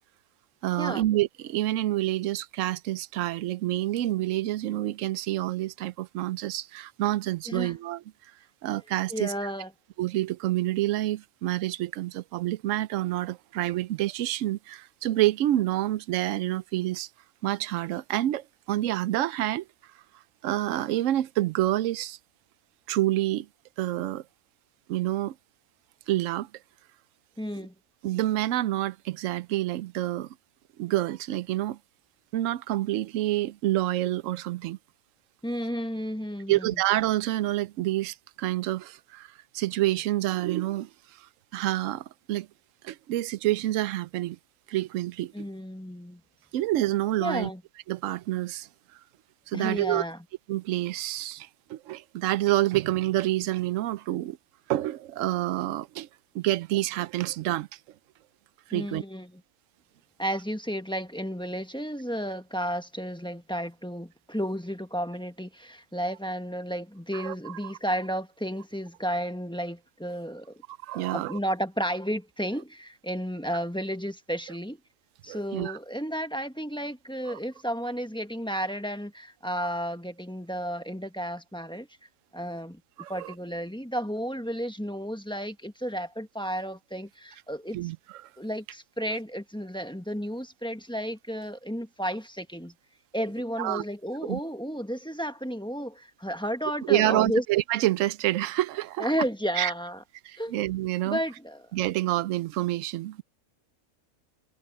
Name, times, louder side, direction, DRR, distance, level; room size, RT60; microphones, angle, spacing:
voice 1, 0.6-8.0 8.6-9.5 10.0-17.1 17.4-19.6 20.4-22.2 22.9-23.5 23.8-24.2 24.9-25.4 26.1-26.5 28.0-30.3 30.8-31.8 32.3-34.8 36.5-40.9 41.2-41.3 41.5-42.5 42.8-44.4 44.7-45.5 46.5-47.5 47.9-48.7 49.5-50.0 50.5-54.4 54.7-56.1 56.3-57.7 58.7-59.0 67.1-67.7 70.7-71.4 75.3-75.8 77.3-77.4 83.0-83.3 87.7-88.0 93.6-93.8 94.3-94.4 96.9-99.1 99.6-99.7 100.2-101.2 101.7-103.2, right 15 dB, 70° right, 0.9 m, -28 dB
voice 2, 9.1-9.7 27.4-27.7 35.4-36.8 45.3-46.2 47.2-47.6 49.5-50.2 58.7-59.4 60.2-70.6 70.9-74.8 75.2-81.9 82.3-82.8 83.1-87.8 88.4-92.7 93.1-97.4 99.0-100.0 100.4-100.5 101.0-101.7, equal, 5° left, 1.1 m, -32 dB
omnidirectional pair, 1.5 m